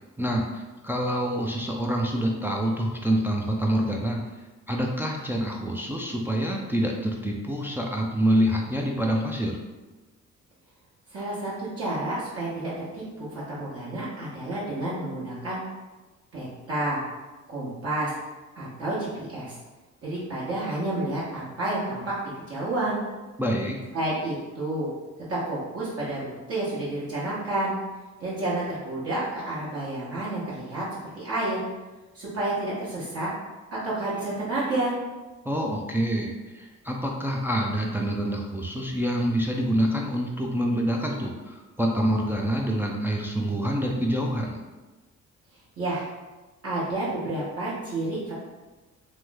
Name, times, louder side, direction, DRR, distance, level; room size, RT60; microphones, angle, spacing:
voice 1, 0.2-4.2 4.7-9.6 23.4-23.8 35.5-44.6, equal, 10° right, 0 dB, 0.3 m, -26 dB
voice 2, 11.1-15.6 16.3-17.0 17.5-18.1 18.6-19.6 20.0-23.0 23.9-24.9 25.3-27.7 28.2-30.8 31.1-31.6 32.1-33.3 33.7-34.9 45.8-46.1 46.6-48.3, right 2 dB, 50° right, -9 dB, 1.1 m, -30 dB
3.0 x 2.0 x 3.4 m, 1.2 s
cardioid pair, 90°, 30 cm